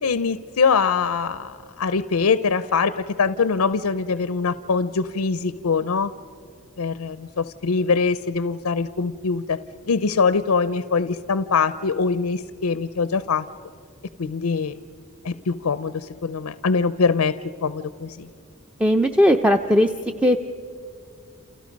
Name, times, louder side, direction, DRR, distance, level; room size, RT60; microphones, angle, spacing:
voice 1, 0.0-6.1 6.8-9.6 9.9-13.5 14.2-14.8 15.2-17.3 17.6-18.3, left 5 dB, 85° left, 13 dB, 0.6 m, -23 dB
voice 2, 18.8-19.9 20.2-20.4, equal, 5° right, 7 dB, 0.5 m, -17 dB
29.5 x 28.5 x 5.3 m, 2.3 s
head